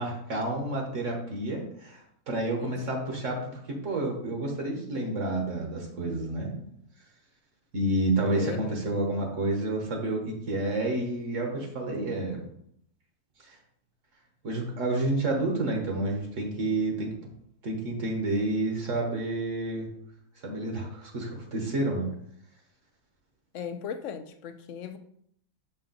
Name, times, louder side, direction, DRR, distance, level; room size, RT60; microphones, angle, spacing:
voice 1, 0.0-2.0 2.3-6.7 7.7-12.4 13.4-13.6 14.4-17.1 17.6-19.9 20.4-22.1, right 2 dB, 55° right, 1 dB, 1.5 m, -29 dB
voice 2, 2.6-3.1 8.3-9.4 23.5-25.0, left 7 dB, 65° left, 10 dB, 0.9 m, -39 dB
6.6 x 4.3 x 3.9 m, 0.69 s
omnidirectional pair, 1.6 m